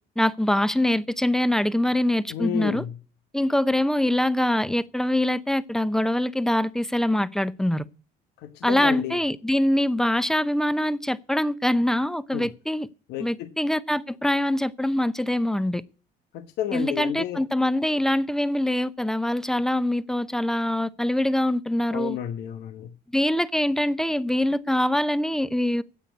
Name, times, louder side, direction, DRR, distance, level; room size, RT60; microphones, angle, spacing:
voice 1, 0.2-2.8 3.3-7.8 8.6-12.9 13.2-15.8 16.7-22.2 23.1-25.8, left 1 dB, 5° left, 0.7 m, -24 dB
voice 2, 2.3-2.9 8.4-9.2 12.3-12.5 13.1-13.5 16.3-17.4 21.9-22.9, left 11 dB, 80° left, 1.1 m, -31 dB
10.0 x 8.4 x 9.3 m
cardioid pair, 110°, 17 cm